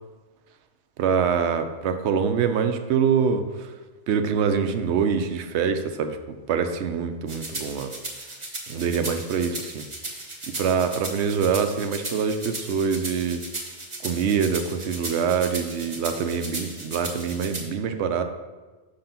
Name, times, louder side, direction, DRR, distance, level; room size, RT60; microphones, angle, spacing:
voice 1, 1.0-3.7 4.1-7.9 8.7-9.8 10.5-13.4 14.0-18.2, right 6 dB, 75° right, 8 dB, 0.9 m, -25 dB
sound 1, 7.3-17.6, right 2 dB, 25° right, 1.0 m, -36 dB
6.2 x 3.9 x 5.6 m, 1.3 s
omnidirectional pair, 1.2 m